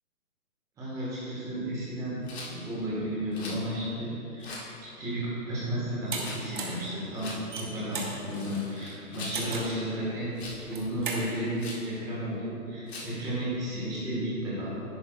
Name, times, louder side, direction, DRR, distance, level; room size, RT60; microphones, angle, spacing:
voice 1, 0.8-2.2 2.4-4.6 5.0-10.4 10.6-14.9, equal, 10° right, -8 dB, 1.4 m, -33 dB
Rattle, 2.2-2.5 3.3-3.6 4.4-4.7 6.1-6.4 7.1-7.4 8.2-9.4 10.3-10.6 11.6-11.9 12.9-13.2, left 3 dB, 45° left, 1.8 m, -42 dB
sound 1, 6.1-6.2 6.6-6.8 7.4-8.2 9.3-9.8 10.6-11.2, right 4 dB, 35° right, 1.0 m, -35 dB
11.0 x 8.7 x 2.3 m, 2.9 s
figure-of-eight pair, 145°, 44 cm